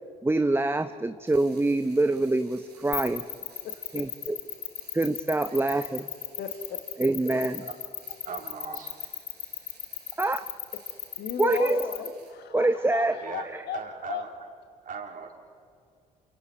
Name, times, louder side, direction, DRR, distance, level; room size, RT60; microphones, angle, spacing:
voice 1, 0.2-3.2 3.9-4.4 4.9-6.0 7.0-7.6 10.2-10.4 11.4-11.8 12.5-13.2 13.5-13.6, right 2 dB, 10° right, 10 dB, 0.8 m, -25 dB
sound 1, 1.2-12.3, right 5 dB, 90° right, 4.2 m, -56 dB
sound 2, 2.9-12.1, left 8 dB, 45° left, 1.1 m, -35 dB
voice 2, 3.6-4.3 6.4-6.8 11.2-13.8 14.1-14.2, left 8 dB, 60° left, 7 dB, 1.8 m, -36 dB
voice 3, 8.2-8.9 13.2-14.3 14.8-15.3, right 5 dB, 45° right, 1 dB, 3.9 m, -39 dB
28.5 x 26.0 x 4.5 m, 2.4 s
hypercardioid pair, 50°, 20 cm